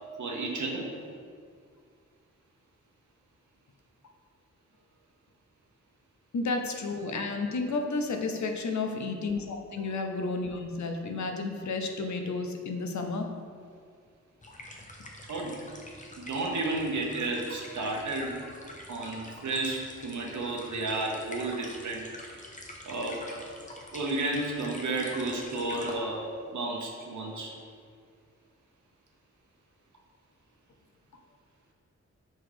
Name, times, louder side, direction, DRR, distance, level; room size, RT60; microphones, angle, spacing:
voice 1, 0.2-0.9 15.3-15.6 16.2-18.4 18.9-22.1 22.9-23.2 23.9-27.5, right 2 dB, 80° right, -1 dB, 1.0 m, -32 dB
voice 2, 6.3-13.3, left 3 dB, 75° left, 4 dB, 0.7 m, -32 dB
sound 1, 14.4-25.9, left 1 dB, 25° left, 0.8 m, -46 dB
6.4 x 4.0 x 4.9 m, 2.1 s
wide cardioid pair, 145°, 29 cm